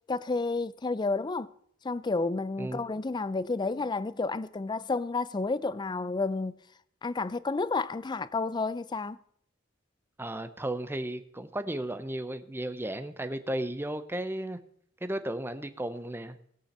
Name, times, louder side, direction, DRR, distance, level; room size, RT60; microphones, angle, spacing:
voice 1, 0.1-1.5 1.8-6.5 7.0-9.2, left 3 dB, 20° left, 0.4 m, -30 dB
voice 2, 10.2-14.6 15.0-16.4, right 1 dB, 10° right, 0.7 m, -34 dB
19.5 x 8.7 x 4.3 m
head